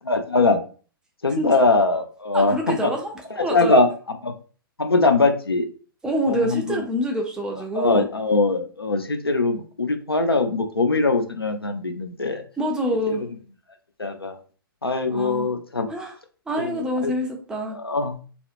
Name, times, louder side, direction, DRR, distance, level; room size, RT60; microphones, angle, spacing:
voice 1, 0.1-0.6 1.2-2.9 3.3-4.3 4.8-5.7 6.3-6.8 7.7-12.4 13.1-13.3 14.0-14.4 14.8-15.9 16.6-17.1 17.7-18.2, left 3 dB, 85° left, 6 dB, 0.4 m, -22 dB
voice 2, 2.3-3.1 3.4-3.8 6.0-8.1 12.6-13.2 15.1-15.5 15.9-16.1 16.5-17.8, equal, 5° right, 0 dB, 0.4 m, -26 dB
2.7 x 2.0 x 2.4 m, 0.39 s
figure-of-eight pair, 115°, 12 cm